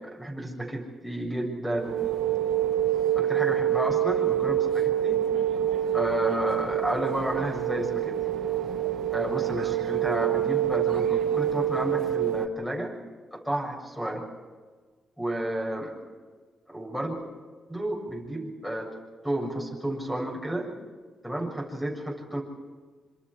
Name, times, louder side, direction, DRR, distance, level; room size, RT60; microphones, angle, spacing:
voice 1, 0.0-2.0 3.2-5.2 5.9-8.2 9.1-13.0 13.3-14.2 15.2-16.0 16.7-17.2 17.7-18.9 19.2-20.7 21.2-22.4, right 1 dB, 5° left, 0 dB, 7.2 m, -31 dB
sound 1, 1.7-12.5, right 11 dB, 75° right, 1.0 m, -26 dB
27.0 x 26.0 x 4.9 m, 1.4 s
cardioid pair, 105°, 0 cm